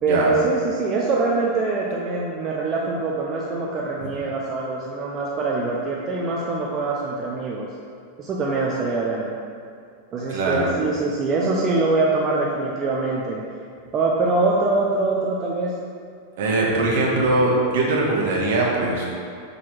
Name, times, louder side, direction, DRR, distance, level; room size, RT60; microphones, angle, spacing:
voice 1, 0.0-7.7 8.2-9.3 10.1-13.4 13.9-15.7, right 3 dB, 30° right, -3 dB, 0.6 m, -23 dB
voice 2, 10.3-10.7 16.4-19.0, right 2 dB, 55° right, -3 dB, 1.2 m, -21 dB
5.9 x 3.9 x 4.5 m, 2.3 s
figure-of-eight pair, 90°, 0 cm